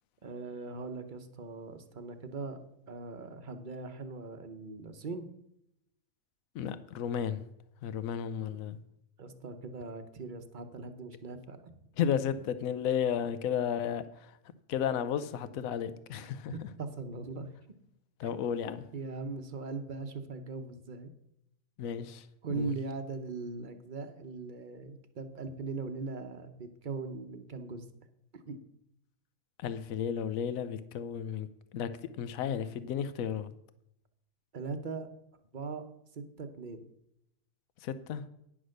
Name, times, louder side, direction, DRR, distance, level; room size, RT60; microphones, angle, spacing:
voice 1, 0.2-2.6 2.9-5.3 9.2-11.7 16.5-17.5 18.9-21.1 22.4-27.8 28.3-28.6 34.5-35.1 35.5-35.9 36.1-36.9, right 4 dB, 40° right, 0.9 m, -40 dB
voice 2, 6.5-7.4 7.8-8.8 12.0-14.4 14.7-16.7 18.2-18.9 21.8-22.7 29.6-31.5 31.7-33.5 37.8-38.2, left 8 dB, 75° left, 1.1 m, -33 dB
9.9 x 6.1 x 6.4 m
omnidirectional pair, 1.5 m